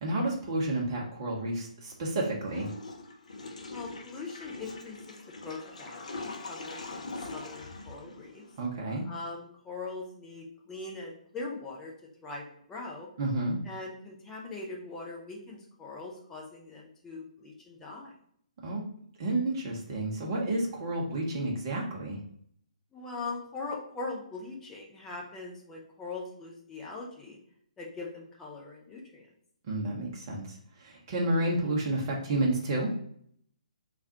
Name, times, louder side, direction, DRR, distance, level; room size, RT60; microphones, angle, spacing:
voice 1, 0.0-2.7 8.6-9.1 13.2-13.6 18.6-18.8 19.2-22.2 29.6-32.9, right 1 dB, 35° right, -2 dB, 0.7 m, -30 dB
Water / Toilet flush, 2.5-8.7, left 3 dB, 60° left, 0.5 m, -42 dB
voice 2, 3.7-8.4 9.0-11.9 12.2-13.1 13.6-18.1 22.9-27.4 27.8-29.3, left 3 dB, 10° left, -2 dB, 0.6 m, -41 dB
3.4 x 2.3 x 2.7 m, 0.64 s
figure-of-eight pair, 130°, 4 cm